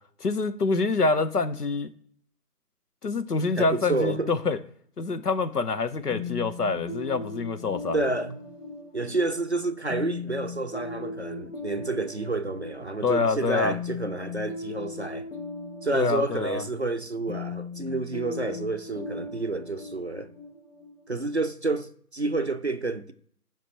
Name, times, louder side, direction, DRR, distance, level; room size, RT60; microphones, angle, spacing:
voice 1, 0.2-1.9 3.0-4.6 5.0-8.0 13.0-13.8 15.9-16.6, left 4 dB, 80° left, 1.0 m, -26 dB
voice 2, 3.6-4.3 7.9-8.4 8.9-15.3 15.8-20.3 21.1-23.1, right 3 dB, 45° right, 0.5 m, -29 dB
sound 1, 6.1-21.7, left 4 dB, 55° left, 2.4 m, -38 dB
8.1 x 5.2 x 2.9 m
figure-of-eight pair, 165°, 47 cm